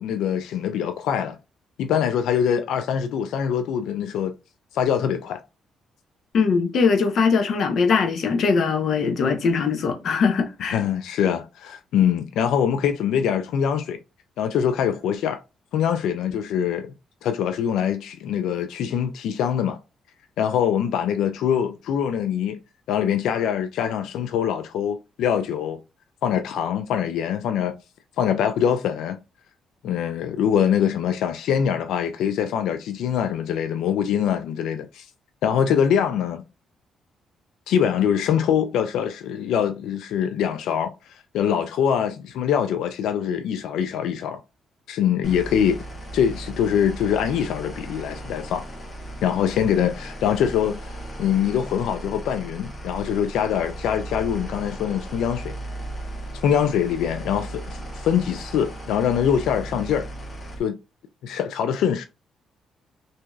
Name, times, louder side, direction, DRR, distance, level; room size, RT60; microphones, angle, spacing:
voice 1, 0.0-1.4 1.8-4.3 4.7-5.4 10.7-14.0 14.4-15.4 15.7-16.9 17.2-19.8 20.4-22.6 22.9-25.8 26.2-27.7 28.2-29.2 29.8-35.1 35.4-36.4 37.7-44.4 44.9-45.8 46.1-48.6 49.2-50.9 51.2-55.5 56.4-60.1 60.6-60.8 61.2-62.0, left 8 dB, 85° left, 0.3 m, -23 dB
voice 2, 6.3-10.8, left 5 dB, 65° left, 0.7 m, -21 dB
sound 1, 45.2-60.6, right 1 dB, 35° left, 1.0 m, -36 dB
2.8 x 2.7 x 2.3 m
cardioid pair, 90°, 0 cm